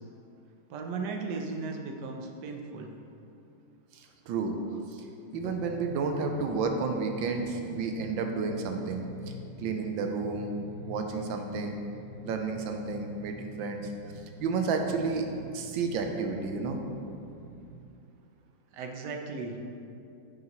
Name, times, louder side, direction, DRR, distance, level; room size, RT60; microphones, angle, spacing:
voice 1, 0.7-2.9 18.7-19.6, right 4 dB, 70° right, 3 dB, 1.3 m, -36 dB
voice 2, 3.9-4.6 4.9-5.0 5.3-9.0 9.6-10.5 10.9-11.8 12.2-13.8 14.4-15.3 15.5-16.8, right 4 dB, 85° right, 4 dB, 1.5 m, -31 dB
sound 1, 5.3-17.7, left 2 dB, 55° left, 1.2 m, -46 dB
8.8 x 6.6 x 3.1 m, 2.6 s
omnidirectional pair, 2.1 m